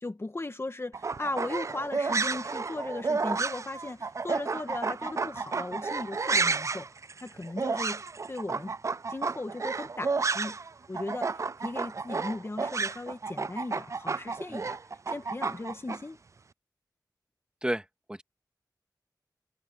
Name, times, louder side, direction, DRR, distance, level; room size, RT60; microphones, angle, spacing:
voice 1, 0.0-6.9 7.2-8.0 8.3-8.7 9.1-10.6 10.9-14.8 15.1-16.2, left 2 dB, 35° left, 1.5 m, -37 dB
sound 1, 0.9-10.7 10.9-16.0, right 4 dB, 45° right, 0.3 m, -31 dB
voice 2, 17.6-18.2, right 1 dB, 10° right, 2.2 m, -33 dB
wide cardioid pair, 70°, 7 cm